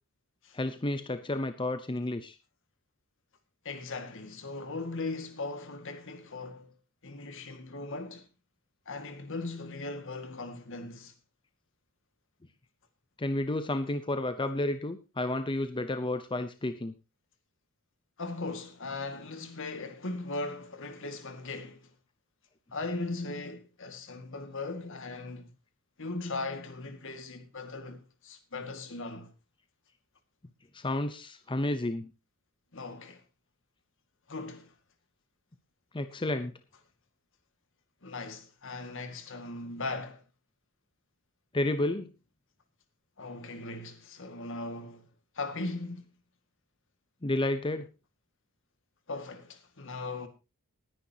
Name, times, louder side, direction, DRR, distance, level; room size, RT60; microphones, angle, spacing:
voice 1, 0.5-2.3 13.2-16.9 30.7-32.1 35.9-36.5 41.5-42.1 47.2-47.9, left 1 dB, 25° left, 0.7 m, -31 dB
voice 2, 3.6-6.7 7.0-8.3 8.9-11.1 18.2-21.9 22.7-25.5 26.0-29.3 32.7-33.2 34.3-34.7 38.0-40.2 43.2-45.1 45.4-46.1 49.1-50.3, left 3 dB, 65° left, 2.0 m, -38 dB
19.5 x 10.5 x 2.9 m
head